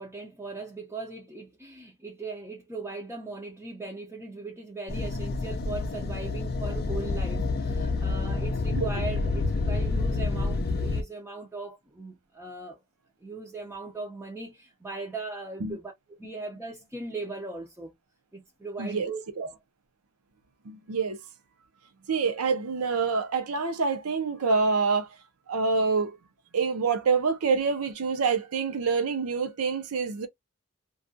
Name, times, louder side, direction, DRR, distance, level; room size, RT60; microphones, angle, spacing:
voice 1, 0.0-12.8 13.2-17.9 18.3-19.6, right 3 dB, 10° right, 0.5 m, -39 dB
sound 1, 4.9-11.0, left 3 dB, 45° left, 0.4 m, -28 dB
voice 2, 18.8-19.1 19.4-19.5 20.7-21.2 22.1-25.1 25.5-26.2 26.5-30.3, right 4 dB, 70° right, 0.6 m, -26 dB
2.3 x 2.3 x 2.5 m
head